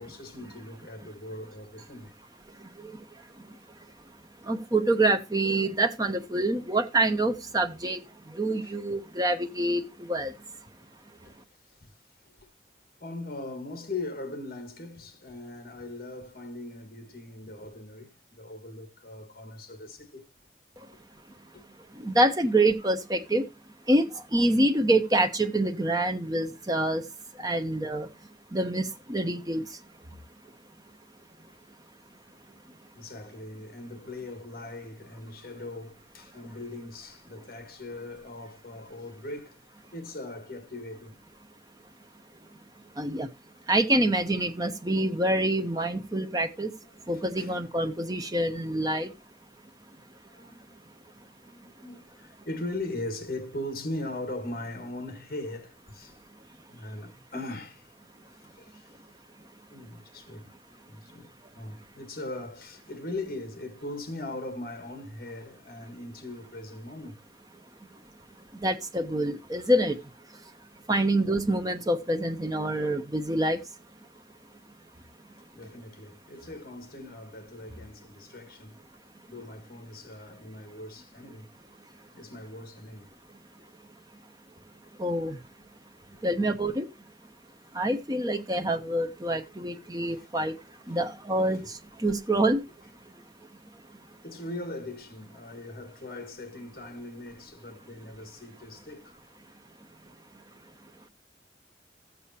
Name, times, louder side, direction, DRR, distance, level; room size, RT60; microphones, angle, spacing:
voice 1, 0.0-2.1 8.6-8.8 11.2-11.3 11.7-11.9 12.4-12.5 13.0-20.3 20.9-21.0 21.5-21.6 32.9-39.7 39.9-41.2 46.6-48.0 50.0-50.8 51.4-56.2 56.7-57.9 58.3-59.0 59.7-60.6 60.9-67.2 69.6-69.7 70.9-71.0 75.5-78.8 79.3-81.5 82.1-83.1 86.1-86.2 89.9-90.3 90.9-91.0 91.5-91.7 94.2-99.2, left 2 dB, 55° left, 1.9 m, -40 dB
voice 2, 4.5-8.0 8.4-9.8 10.1-10.3 22.0-23.4 23.9-27.0 27.4-28.1 28.5-29.6 43.0-43.3 43.7-46.7 47.1-49.1 68.6-70.0 70.9-73.6 85.0-85.4 86.2-86.9 87.7-90.5 90.9-91.6 92.0-92.6, right 1 dB, 20° right, 0.9 m, -26 dB
13.5 x 8.5 x 2.9 m
head